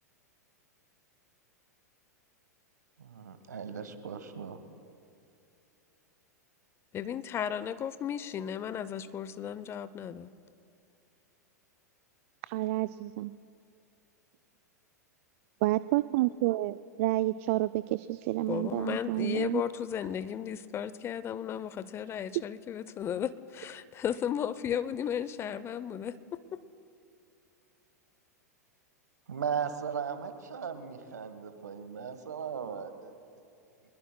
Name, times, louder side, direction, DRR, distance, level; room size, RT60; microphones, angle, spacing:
voice 1, 3.0-4.6 29.3-33.1, right 7 dB, 75° right, 10 dB, 1.3 m, -37 dB
voice 2, 6.9-10.3 18.5-26.6, left 9 dB, 25° left, 15 dB, 0.5 m, -35 dB
voice 3, 12.4-13.3 15.6-19.6, right 17 dB, 50° right, 14 dB, 0.3 m, -29 dB
24.0 x 21.0 x 2.2 m, 2.6 s
figure-of-eight pair, 95°, 9 cm